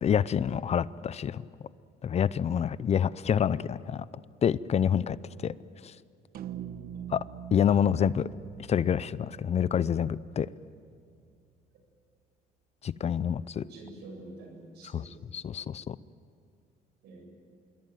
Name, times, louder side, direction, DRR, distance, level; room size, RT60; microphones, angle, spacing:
voice 1, 0.0-1.4 2.0-4.0 4.4-5.2 5.4-5.5 5.8-5.9 7.1-7.2 7.5-8.3 8.7-10.5 12.8-13.6 14.9-16.0, left 8 dB, 40° left, 18 dB, 0.6 m, -27 dB
sound 1, 6.3-10.8, right 9 dB, 65° right, 1.0 m, -44 dB
voice 2, 13.6-15.3 17.0-17.3, right 2 dB, 80° right, 2 dB, 7.8 m, -47 dB
26.5 x 22.5 x 9.3 m, 2.3 s
cardioid pair, 110°, 17 cm